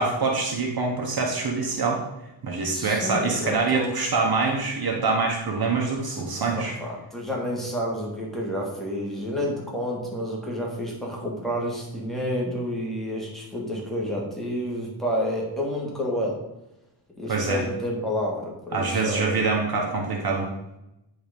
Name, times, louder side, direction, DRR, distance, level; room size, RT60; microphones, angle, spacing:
voice 1, 0.0-2.0 2.4-6.7 17.3-17.6 18.7-20.5, right 4 dB, 50° right, 0 dB, 1.2 m, -25 dB
voice 2, 2.7-4.0 6.4-16.4 17.2-19.4, equal, ahead, -3 dB, 1.9 m, -30 dB
9.3 x 3.9 x 5.2 m, 0.91 s
wide cardioid pair, 165°, 47 cm